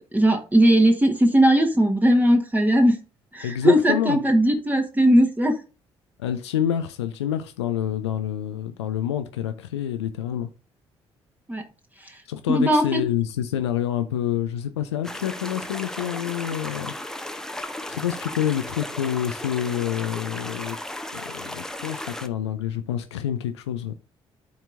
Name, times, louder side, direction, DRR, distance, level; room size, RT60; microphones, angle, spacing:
voice 1, 0.0-3.0 3.3-5.5 11.5-11.6 12.5-13.0, right 1 dB, 10° right, 1.4 m, -18 dB
voice 2, 3.4-4.2 6.2-10.5 12.3-16.9 17.9-20.8 21.1-23.9, left 10 dB, 75° left, 0.5 m, -27 dB
sound 1, 15.0-22.3, left 1 dB, 5° left, 0.8 m, -35 dB
12.5 x 4.4 x 2.6 m
figure-of-eight pair, 45°, 14 cm